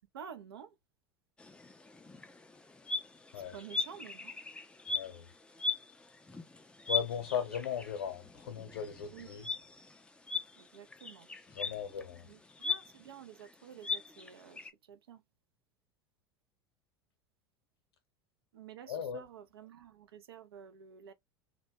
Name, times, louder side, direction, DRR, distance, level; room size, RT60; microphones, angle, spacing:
voice 1, 0.1-0.8 3.5-4.4 9.1-9.4 10.6-11.3 12.2-15.2 18.5-21.1, right 8 dB, 75° right, 0.4 m, -51 dB
sound 1, 1.4-14.7, left 4 dB, 10° left, 0.3 m, -40 dB
voice 2, 4.9-5.3 6.9-9.5 11.5-12.3 18.9-19.2, left 8 dB, 70° left, 0.7 m, -37 dB
2.1 x 2.1 x 2.8 m
figure-of-eight pair, 80°, 13 cm